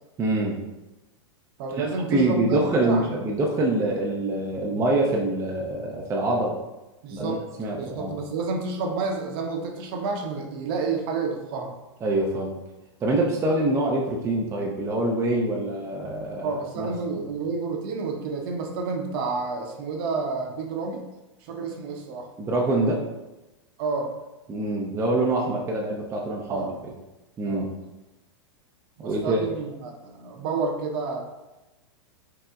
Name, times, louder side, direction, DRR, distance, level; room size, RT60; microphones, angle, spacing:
voice 1, 0.2-0.6 1.8-6.6 7.1-8.1 12.0-12.5 13.0-16.9 17.2-17.3 22.4-23.0 24.5-26.7 27.4-27.7 29.0-29.5, right 2 dB, 20° right, -1 dB, 0.5 m, -25 dB
voice 2, 1.6-3.2 7.0-7.4 7.8-11.7 16.4-21.0 21.4-22.3 23.8-24.1 26.5-26.8 27.4-27.7 29.0-31.2, right 4 dB, 55° right, 2 dB, 0.7 m, -30 dB
5.5 x 2.0 x 2.3 m, 1.0 s
hypercardioid pair, 120°, 15 cm